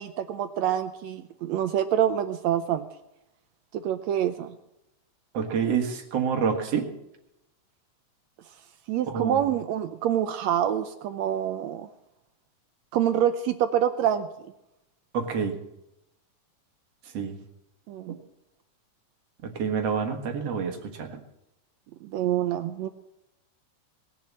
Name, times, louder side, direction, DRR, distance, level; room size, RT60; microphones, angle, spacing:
voice 1, 0.0-2.9 3.7-4.5 8.9-11.9 12.9-14.3 17.9-18.2 22.0-22.9, right 10 dB, 80° right, 10 dB, 1.6 m, -26 dB
voice 2, 5.3-6.9 9.1-9.4 15.1-15.5 17.1-17.4 19.4-21.2, right 6 dB, 55° right, 4 dB, 2.5 m, -27 dB
20.0 x 7.6 x 7.6 m, 0.87 s
omnidirectional pair, 3.8 m